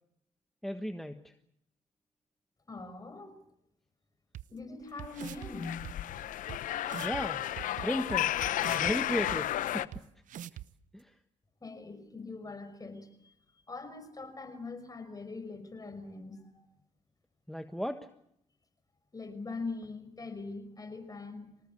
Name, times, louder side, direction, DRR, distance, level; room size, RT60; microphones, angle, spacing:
voice 1, 0.6-1.3 7.0-7.5 7.8-8.4 8.7-10.0 10.9-11.1 17.5-18.1, equal, ahead, 8 dB, 1.4 m, -35 dB
voice 2, 2.7-3.3 4.5-6.0 11.6-13.3 13.7-16.7 19.1-21.5, left 3 dB, 25° left, 9 dB, 5.8 m, -42 dB
sound 1, 4.3-4.4 5.0-5.5 5.8-5.9 6.5-6.6 6.9-7.2 7.6-8.9 9.3-9.4 9.9-10.0 10.3-10.7, right 11 dB, 70° right, 0.9 m, -42 dB
sound 2, 5.2-9.9, left 13 dB, 75° left, 0.9 m, -33 dB
25.0 x 19.0 x 8.4 m, 0.75 s
cardioid pair, 75°, 14 cm